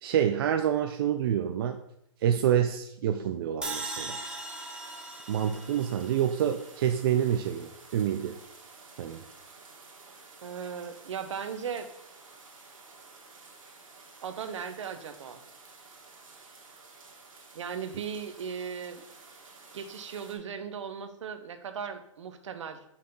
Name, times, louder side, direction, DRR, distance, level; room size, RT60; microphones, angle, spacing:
voice 1, 0.0-1.8 2.2-4.2 5.3-8.4 9.0-9.2, right 9 dB, 45° right, 6 dB, 0.4 m, -27 dB
sound 1, 3.6-6.8, right 2 dB, 5° right, 0.7 m, -39 dB
sound 2, 4.2-20.4, right 4 dB, 80° right, 2.1 m, -52 dB
voice 2, 10.4-11.9 14.2-15.4 17.5-19.0 19.7-22.8, right 7 dB, 65° right, 9 dB, 0.9 m, -37 dB
6.4 x 5.7 x 3.7 m, 0.77 s
hypercardioid pair, 145°, 17 cm